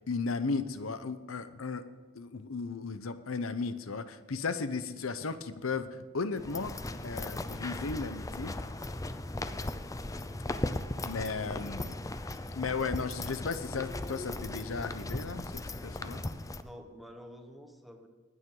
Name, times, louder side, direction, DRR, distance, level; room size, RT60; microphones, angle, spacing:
voice 1, 0.0-1.8 2.1-5.9 6.1-6.8 7.0-8.5 11.0-12.0 12.5-16.2, left 4 dB, 80° left, 12 dB, 0.8 m, -35 dB
sound 1, 6.4-16.6, left 2 dB, 15° left, 0.5 m, -37 dB
voice 2, 9.0-9.3 16.4-18.1, equal, ahead, 3 dB, 1.3 m, -50 dB
20.0 x 9.5 x 3.9 m, 1.3 s
head